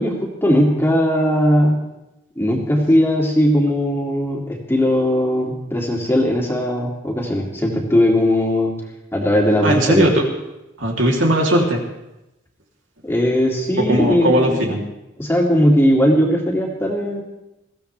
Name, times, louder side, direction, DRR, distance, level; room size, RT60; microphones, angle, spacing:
voice 1, 0.0-1.8 2.4-8.7 9.1-10.1 13.0-14.8 15.2-17.2, equal, 10° left, -1 dB, 2.6 m, -18 dB
voice 2, 9.6-10.2 10.8-11.8 13.8-14.8, right 1 dB, 70° right, -1 dB, 3.2 m, -18 dB
21.5 x 16.0 x 3.4 m, 0.94 s
head